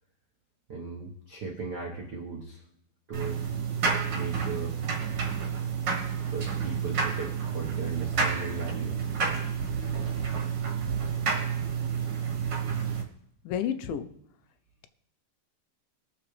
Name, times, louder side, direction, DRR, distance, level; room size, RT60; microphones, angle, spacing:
voice 1, 0.7-2.6 3.1-3.4 4.1-4.8 6.3-9.0, right 4 dB, 75° right, -2 dB, 0.9 m, -37 dB
sound 1, 3.1-13.0, right 6 dB, 55° right, 1.8 m, -30 dB
voice 2, 13.5-14.1, left 9 dB, 85° left, 10 dB, 2.4 m, -30 dB
20.5 x 7.1 x 3.3 m, 0.75 s
omnidirectional pair, 4.0 m